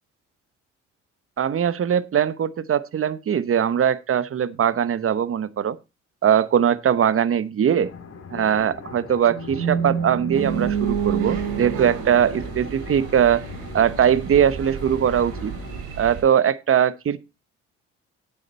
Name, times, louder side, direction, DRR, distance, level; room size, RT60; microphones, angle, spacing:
voice 1, 1.4-5.8 6.2-7.9 8.3-13.4 13.7-15.5 16.0-17.2, right 9 dB, 45° right, 1.0 m, -21 dB
sound 1, 7.8-15.8, left 5 dB, 50° left, 2.4 m, -40 dB
sound 2, 9.3-13.4, right 7 dB, 70° right, 1.5 m, -27 dB
sound 3, 10.3-16.2, right 6 dB, 90° right, 3.2 m, -36 dB
9.0 x 8.2 x 4.2 m
supercardioid pair, 65°, 31 cm